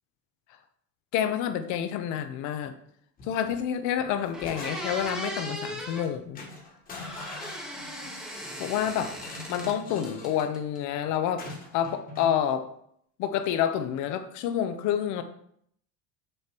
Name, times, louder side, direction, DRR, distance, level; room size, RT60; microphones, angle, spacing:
voice 1, 1.1-2.7 3.2-6.4 8.6-9.1 9.5-11.5 11.7-12.7 13.2-15.2, left 9 dB, 50° left, 9 dB, 0.8 m, -28 dB
sound 1, 3.2-3.6 4.0-5.1 5.9-6.1 6.3-8.2 9.1-10.5 11.4-12.4, left 3 dB, 20° left, 1.4 m, -43 dB
sound 2, 3.8-3.9 4.3-6.1 7.0-9.8 10.0-10.8, equal, ahead, 1.0 m, -38 dB
6.5 x 6.5 x 4.5 m, 0.70 s
cardioid pair, 170°, 38 cm